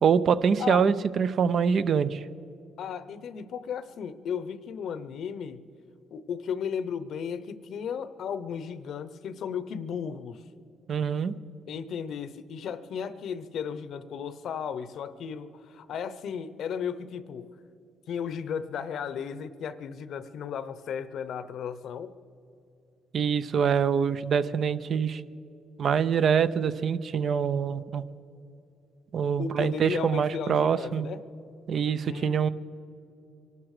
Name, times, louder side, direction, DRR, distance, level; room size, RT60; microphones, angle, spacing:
voice 1, 0.0-2.3 10.9-11.4 23.1-25.2 25.8-28.0 29.1-31.1 31.7-32.5, right 7 dB, 55° right, 13 dB, 0.6 m, -25 dB
voice 2, 2.8-5.6 6.1-10.4 11.7-17.5 18.1-22.1 29.4-31.2 32.1-32.2, left 7 dB, 70° left, 14 dB, 0.8 m, -35 dB
24.0 x 12.0 x 4.9 m, 2.7 s
cardioid pair, 90°, 0 cm